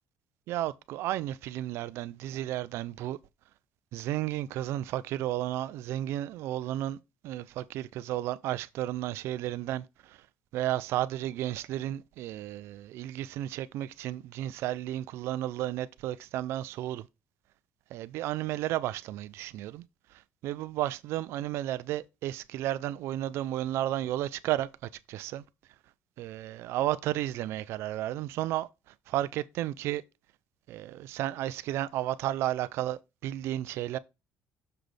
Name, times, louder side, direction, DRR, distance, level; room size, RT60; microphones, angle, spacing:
voice 1, 0.5-3.2 3.9-7.0 7.2-10.2 10.5-17.1 17.9-19.8 20.4-24.7 25.1-25.4 26.2-28.7 29.1-30.0 30.7-34.0, right 13 dB, 70° right, 0.5 m, -33 dB
6.8 x 6.0 x 3.3 m
cardioid pair, 125°, 5 cm